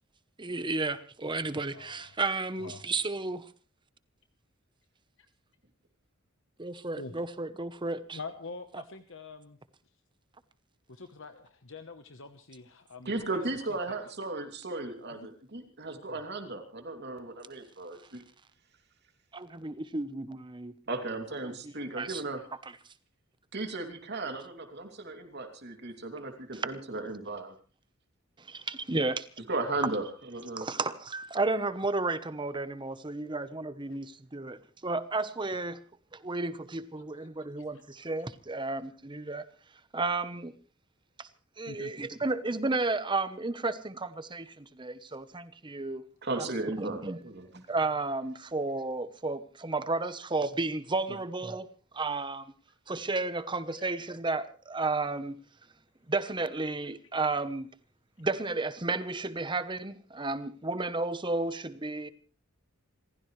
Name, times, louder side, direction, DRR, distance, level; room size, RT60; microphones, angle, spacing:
voice 1, 0.4-3.5 6.6-8.2 19.3-20.7 21.4-22.2 26.5-26.7 28.5-29.3 30.6-35.8 36.1-39.4 39.9-40.5 41.2-41.3 41.6-46.0 46.4-46.5 46.8-47.2 47.5-51.7 51.9-52.5 52.9-55.4 56.1-57.7 58.2-62.1, right 3 dB, 20° right, 1.0 m, -32 dB
voice 2, 1.7-2.2 2.6-2.8 5.2-5.3 7.0-7.2 8.1-9.6 10.9-13.4 13.9-14.0 15.1-15.3 16.1-16.2 37.1-37.3 37.6-38.1 41.7-41.9 51.1-51.2 53.7-53.9, left 3 dB, 65° left, 1.1 m, -46 dB
voice 3, 13.0-18.2 20.9-22.4 23.5-27.5 29.5-30.6 46.2-47.5, right 2 dB, 50° right, 2.9 m, -36 dB
28.0 x 15.0 x 3.3 m
head